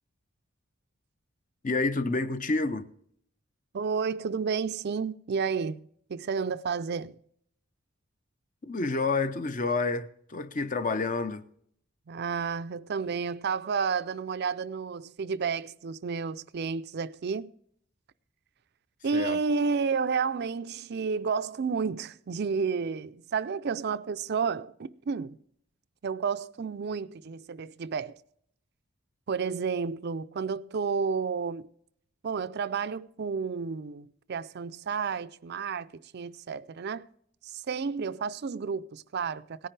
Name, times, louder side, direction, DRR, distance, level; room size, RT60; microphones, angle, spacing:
voice 1, 1.6-2.9 8.6-11.4 19.1-19.4, left 3 dB, 40° left, 0.7 m, -29 dB
voice 2, 3.7-5.8 6.1-7.2 12.1-17.5 19.0-25.4 26.0-28.2 29.3-31.7 32.2-37.1 37.4-39.7, right 5 dB, 50° right, 0.4 m, -31 dB
18.0 x 10.0 x 3.3 m
head